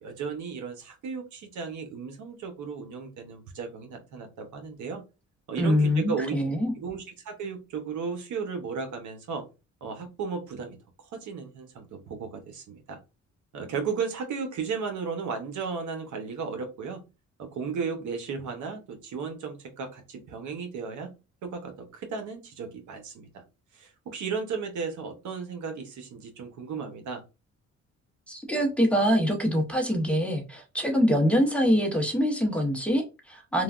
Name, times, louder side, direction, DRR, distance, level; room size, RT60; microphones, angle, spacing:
voice 1, 0.0-5.0 5.5-6.3 6.7-9.4 9.8-10.8 11.1-13.0 13.5-17.0 17.4-21.1 21.4-23.4 23.7-27.2, right 5 dB, 75° right, 5 dB, 0.9 m, -35 dB
voice 2, 5.6-6.7 28.3-33.6, equal, 5° left, 0 dB, 0.7 m, -24 dB
3.2 x 2.2 x 2.4 m, 0.28 s
cardioid pair, 90°, 30 cm